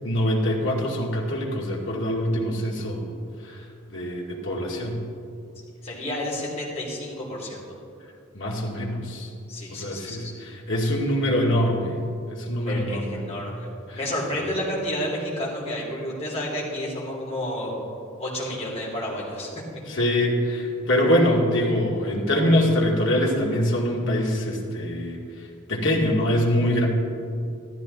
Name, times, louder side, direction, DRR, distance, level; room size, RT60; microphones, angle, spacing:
voice 1, 0.0-3.0 3.4-3.6 3.9-5.0 8.3-9.3 9.7-11.9 12.3-13.2 13.9-14.0 19.9-26.9, equal, 60° left, -2 dB, 2.1 m, -24 dB
voice 2, 5.8-7.6 9.5-10.3 12.6-17.7 18.2-19.6, left 1 dB, 30° left, -4 dB, 3.2 m, -30 dB
14.0 x 13.5 x 4.1 m, 2.4 s
head